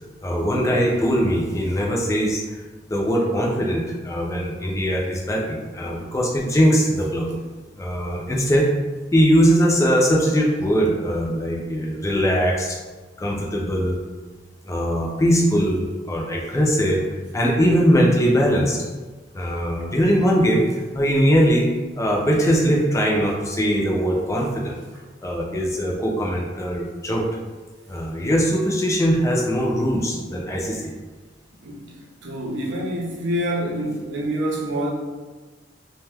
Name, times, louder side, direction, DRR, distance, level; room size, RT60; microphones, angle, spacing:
voice 1, 0.2-2.6 2.9-7.3 7.8-8.7 9.1-12.8 13.2-14.0 14.7-17.0 17.3-18.8 19.3-20.7 20.9-21.7 22.0-24.8 25.2-27.2 27.9-30.9, equal, 15° left, -2 dB, 0.3 m, -21 dB
voice 2, 31.6-32.0 32.2-34.9, right 1 dB, 85° right, -1 dB, 0.6 m, -26 dB
2.6 x 2.2 x 3.3 m, 1.3 s
head